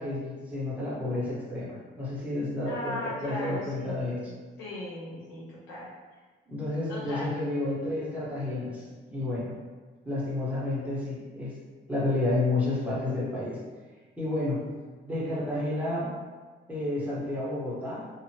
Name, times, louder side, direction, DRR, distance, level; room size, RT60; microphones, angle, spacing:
voice 1, 0.0-4.3 6.5-9.6 10.0-11.5 11.9-13.6 14.2-14.6 15.0-16.1 16.7-18.0, left 2 dB, 5° right, -8 dB, 1.1 m, -30 dB
voice 2, 2.6-4.2 4.6-5.9 6.9-7.3, left 1 dB, 90° left, -7 dB, 1.1 m, -37 dB
2.8 x 2.5 x 2.9 m, 1.3 s
cardioid pair, 90°, 20 cm